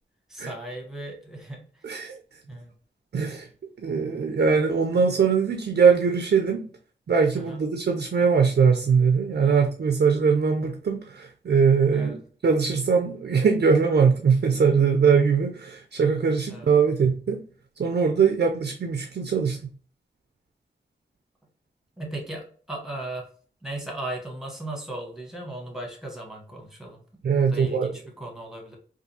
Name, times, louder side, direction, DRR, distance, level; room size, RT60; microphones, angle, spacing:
voice 1, 0.3-1.7 2.5-2.7 7.3-7.6 9.4-9.6 11.9-12.2 16.5-16.7 22.0-23.3 23.6-27.0 27.3-28.8, right 1 dB, ahead, 0 dB, 1.1 m, -37 dB
voice 2, 1.8-2.2 3.1-3.5 3.8-6.7 7.1-17.4 17.8-19.6 27.2-27.9, right 5 dB, 60° right, 5 dB, 0.4 m, -21 dB
3.4 x 2.4 x 2.7 m, 0.43 s
cardioid pair, 50°, 19 cm